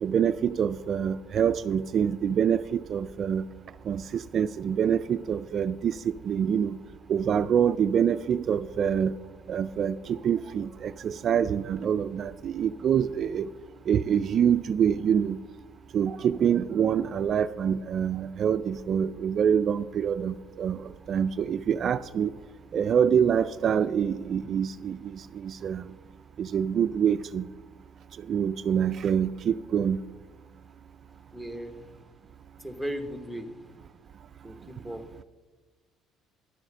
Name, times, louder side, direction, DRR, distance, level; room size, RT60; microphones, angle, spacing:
voice 1, 0.0-3.5 3.8-6.8 7.1-9.1 9.5-13.5 13.9-15.4 15.9-22.3 22.7-25.9 26.4-27.5 28.2-30.0, right 8 dB, 50° right, 12 dB, 0.3 m, -26 dB
voice 2, 31.3-31.8 32.6-33.5 34.4-35.0, equal, 5° left, 7 dB, 1.3 m, -36 dB
11.0 x 7.6 x 6.2 m, 1.3 s
cardioid pair, 95°, 0 cm